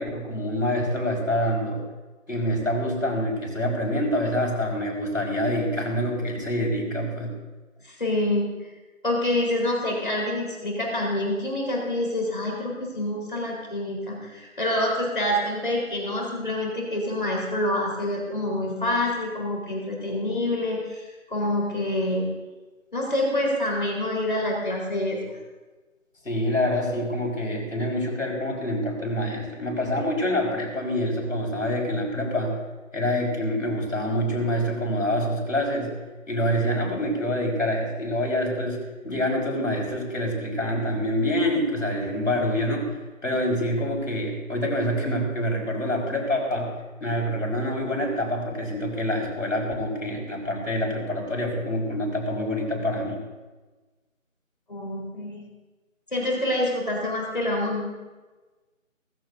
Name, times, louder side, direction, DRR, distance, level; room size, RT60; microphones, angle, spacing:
voice 1, 0.0-1.8 2.3-7.4 26.3-32.6 32.9-35.9 36.3-43.0 43.2-46.7 47.0-53.2, equal, 65° left, 0 dB, 5.1 m, -26 dB
voice 2, 7.8-8.7 9.0-22.3 22.9-25.4 54.7-55.5 56.1-58.0, left 1 dB, 35° left, -2 dB, 4.1 m, -27 dB
20.0 x 15.0 x 2.7 m, 1.3 s
figure-of-eight pair, 175°, 41 cm